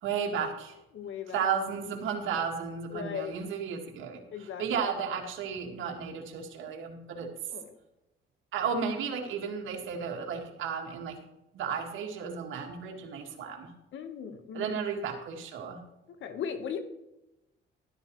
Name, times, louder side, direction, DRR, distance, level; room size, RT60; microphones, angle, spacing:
voice 1, 0.0-0.8 1.3-7.3 8.5-11.2 11.5-13.7 14.5-15.8, right 6 dB, 80° right, 1 dB, 2.0 m, -33 dB
voice 2, 0.9-1.5 2.9-3.3 4.3-4.9 7.5-7.7 13.9-14.8 16.2-16.8, left 7 dB, 75° left, 8 dB, 1.4 m, -37 dB
12.5 x 11.5 x 3.2 m, 0.92 s
cardioid pair, 90°, 20 cm